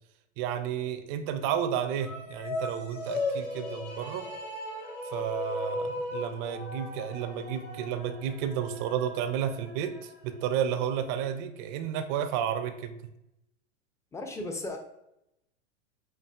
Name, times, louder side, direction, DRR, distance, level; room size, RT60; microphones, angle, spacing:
voice 1, 0.4-4.3 5.1-13.0, right 9 dB, 45° right, 9 dB, 0.5 m, -32 dB
sound 1, 1.9-10.4, left 2 dB, 90° left, 1.2 m, -37 dB
voice 2, 14.1-14.8, left 2 dB, 10° left, 4 dB, 0.4 m, -35 dB
5.6 x 2.5 x 2.3 m, 0.84 s
hypercardioid pair, 110°, 35 cm